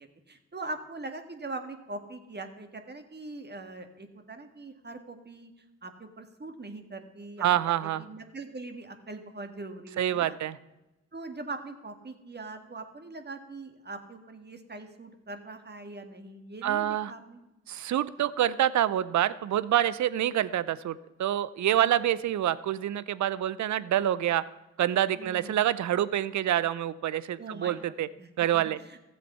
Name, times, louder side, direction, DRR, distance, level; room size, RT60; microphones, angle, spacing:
voice 1, 0.0-5.5 5.8-7.5 7.8-10.4 11.1-17.4 21.8-21.9 25.2-25.6 27.4-27.8 28.2-29.0, right 2 dB, 35° right, 7 dB, 1.8 m, -42 dB
voice 2, 7.4-8.0 10.0-10.6 16.6-17.1 17.7-24.4 24.8-28.1 28.4-28.8, right 11 dB, 65° right, 18 dB, 0.6 m, -27 dB
14.0 x 7.6 x 5.6 m, 1.0 s
supercardioid pair, 45°, 31 cm